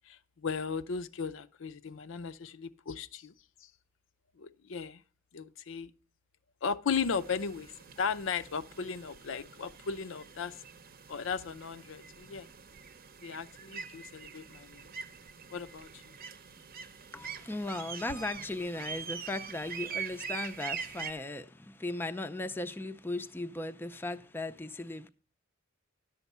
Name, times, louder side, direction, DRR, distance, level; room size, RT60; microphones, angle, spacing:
voice 1, 0.1-3.3 3.6-3.7 4.4-5.0 5.3-5.9 6.6-7.7 8.0-10.6 11.1-12.5 13.2-14.8 15.5-16.0, left 6 dB, 70° left, 0.5 m, -36 dB
sound 1, 7.0-21.1, right 7 dB, 45° right, 0.8 m, -44 dB
voice 2, 17.1-25.1, left 2 dB, 10° left, 0.4 m, -37 dB
11.0 x 7.1 x 5.4 m
head